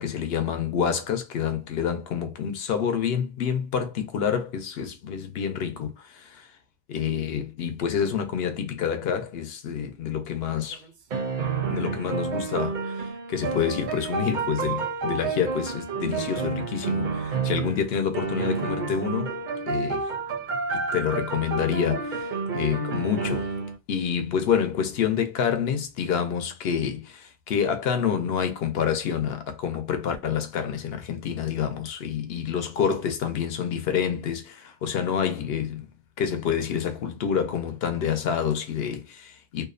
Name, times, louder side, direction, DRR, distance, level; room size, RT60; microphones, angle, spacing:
voice 1, 0.0-6.5 6.9-10.8 11.7-19.4 19.7-20.1 20.7-23.5 23.9-35.9 36.2-39.7, left 7 dB, 75° left, 0.8 m, -28 dB
sound 1, 10.6-17.9 18.1-23.8, right 4 dB, 60° right, 0.6 m, -30 dB
2.5 x 2.0 x 2.4 m
omnidirectional pair, 1.1 m